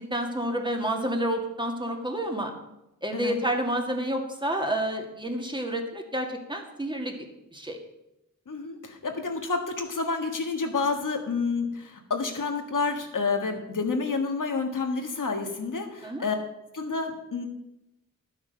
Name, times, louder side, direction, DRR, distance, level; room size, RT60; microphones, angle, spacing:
voice 1, 0.0-2.5 3.0-7.1 7.5-7.8 16.0-16.2, right 1 dB, 15° right, 2 dB, 2.1 m, -29 dB
voice 2, 8.5-16.4 16.7-17.4, left 4 dB, 65° left, 4 dB, 1.7 m, -29 dB
11.5 x 7.4 x 6.4 m, 0.89 s
wide cardioid pair, 65°, 33 cm